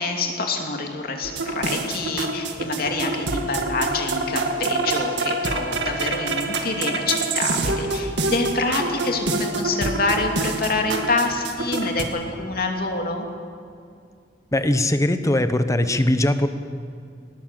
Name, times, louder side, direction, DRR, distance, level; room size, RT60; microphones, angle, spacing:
voice 1, 0.0-13.3, left 3 dB, 60° left, 2 dB, 2.7 m, -26 dB
sound 1, 1.2-12.0, right 3 dB, 90° right, 2.0 m, -26 dB
voice 2, 14.5-16.5, left 1 dB, 20° left, 10 dB, 1.0 m, -20 dB
19.5 x 18.5 x 7.6 m, 2.3 s
head